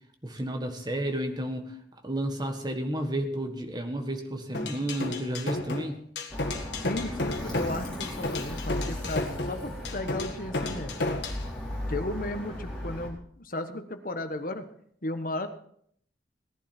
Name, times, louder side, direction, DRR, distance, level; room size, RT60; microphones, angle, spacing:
voice 1, 0.2-1.7 2.0-6.0, right 1 dB, 25° right, 5 dB, 1.6 m, -31 dB
sound 1, 4.5-11.4, left 2 dB, 70° left, 1.8 m, -32 dB
Alarm, 6.3-13.1, left 1 dB, 5° left, 4.4 m, -36 dB
voice 2, 6.8-10.9 11.9-14.6 15.0-15.5, left 1 dB, 50° left, 8 dB, 1.3 m, -35 dB
18.0 x 11.0 x 4.5 m, 0.64 s
head